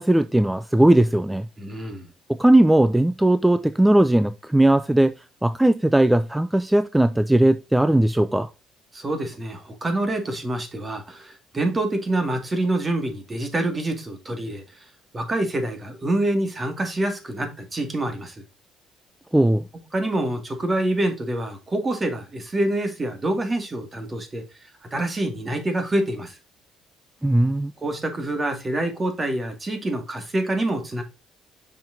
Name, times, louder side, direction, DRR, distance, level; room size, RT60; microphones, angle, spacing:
voice 1, 0.0-1.5 2.3-5.1 5.4-8.5 19.3-19.7 27.2-27.7, right 1 dB, 5° right, 0.4 m, -18 dB
voice 2, 1.6-2.1 8.9-14.9 15.1-18.4 19.9-24.4 24.9-26.4 27.8-31.0, right 1 dB, 25° right, 2.1 m, -26 dB
6.8 x 5.8 x 2.8 m
cardioid pair, 85°, 0 cm